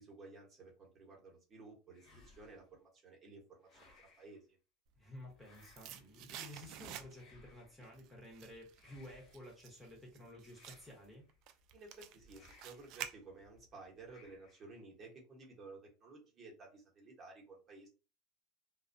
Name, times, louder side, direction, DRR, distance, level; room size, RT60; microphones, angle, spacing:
voice 1, 0.0-4.6 11.7-17.9, right 3 dB, 25° right, -1 dB, 1.0 m, -55 dB
sound 1, 1.9-2.7 3.6-4.4 5.4-6.2 7.1-7.9 8.7-9.6 10.5-11.4 12.3-13.0 14.1-14.8, left 3 dB, 30° left, 0.8 m, -64 dB
voice 2, 5.0-11.2, left 1 dB, ahead, -3 dB, 1.0 m, -53 dB
sound 2, 5.1-7.5 7.8-13.7 14.0-14.1, right 10 dB, 50° right, 0.3 m, -50 dB
2.2 x 2.2 x 2.5 m, 0.33 s
supercardioid pair, 140°, 0 cm